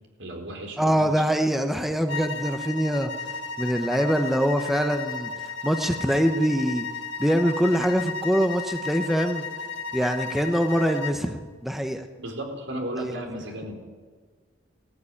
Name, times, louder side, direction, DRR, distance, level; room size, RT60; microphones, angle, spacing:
voice 1, 0.2-1.1 12.2-13.8, right 1 dB, 80° right, 2 dB, 4.2 m, -34 dB
voice 2, 0.8-3.1 3.6-5.3 5.6-6.9 7.2-9.4 9.9-12.1 13.0-13.2, equal, ahead, 6 dB, 0.9 m, -24 dB
sound 1, 2.1-11.2, left 4 dB, 75° left, 1.8 m, -34 dB
18.0 x 14.5 x 9.9 m, 1.5 s
head